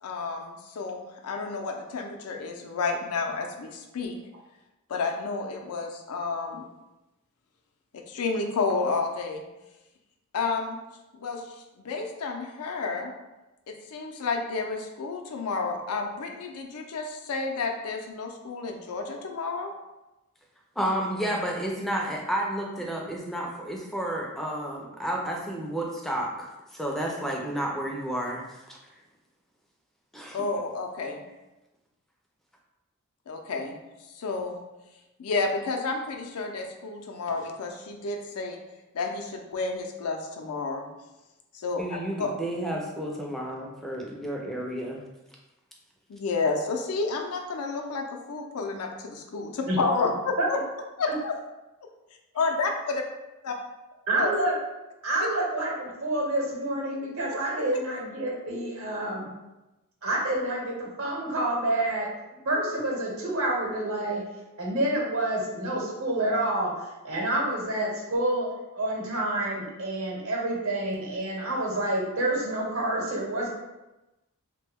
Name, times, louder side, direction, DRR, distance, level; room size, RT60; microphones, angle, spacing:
voice 1, 0.0-4.2 4.9-6.7 7.9-9.4 10.3-10.8 11.2-13.1 13.7-19.7 30.3-31.2 33.3-33.8 34.2-34.6 35.2-38.6 38.9-40.9 41.5-42.3 46.1-50.6 51.0-51.4 52.3-53.0 53.4-53.5 54.2-54.3, left 4 dB, 85° left, 2 dB, 0.5 m, -30 dB
voice 2, 20.8-28.8 30.1-30.4 41.8-45.0, right 1 dB, ahead, -1 dB, 0.4 m, -31 dB
voice 3, 54.1-54.5 55.0-59.3 60.0-62.1 62.4-64.2 64.6-73.5, right 1 dB, 70° right, -2 dB, 0.9 m, -28 dB
3.0 x 2.2 x 3.4 m, 1.0 s
head